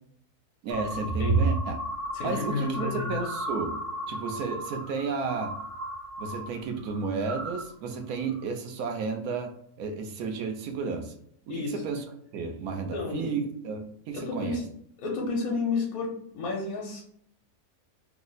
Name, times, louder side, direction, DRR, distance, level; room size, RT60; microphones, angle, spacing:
voice 1, 0.6-1.8 2.2-3.8 4.1-5.6 6.2-11.1 11.5-12.0 12.3-14.6, right 4 dB, 75° right, 5 dB, 1.1 m, -32 dB
sound 1, 0.7-6.5 6.8-7.7 8.2-8.4, right 3 dB, 55° right, 0.8 m, -32 dB
voice 2, 2.1-3.1 11.5-11.8 12.9-13.3 14.1-14.6 15.0-17.0, left 4 dB, 75° left, -2 dB, 1.2 m, -31 dB
3.4 x 2.0 x 3.8 m, 0.68 s
omnidirectional pair, 1.6 m